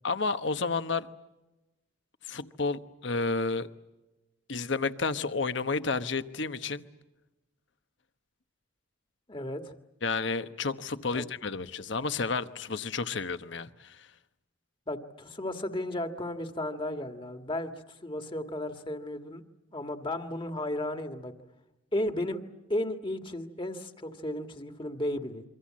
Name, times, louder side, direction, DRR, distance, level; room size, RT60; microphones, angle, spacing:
voice 1, 0.0-1.1 2.2-3.7 4.5-6.8 10.0-14.1, left 4 dB, 65° left, 1.1 m, -31 dB
voice 2, 9.3-9.7 11.1-11.2 14.9-19.4 19.7-21.3 21.9-22.4 22.7-25.4, left 1 dB, 25° left, 1.7 m, -34 dB
27.5 x 24.5 x 7.5 m
head